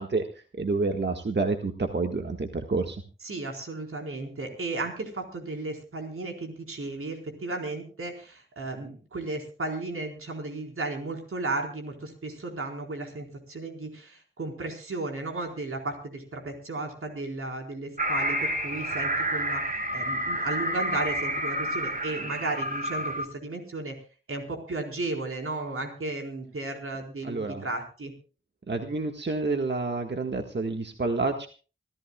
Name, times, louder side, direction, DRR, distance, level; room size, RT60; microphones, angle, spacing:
voice 1, 0.0-3.0 27.2-27.6 28.7-31.5, right 3 dB, 55° right, 4 dB, 1.7 m, -29 dB
voice 2, 3.2-19.6 19.9-23.9 24.3-28.1, right 2 dB, 85° right, 2 dB, 4.4 m, -34 dB
sound 1, 18.0-23.3, equal, 40° right, 2.1 m, -29 dB
26.5 x 14.5 x 2.3 m, 0.37 s
wide cardioid pair, 75°, 21 cm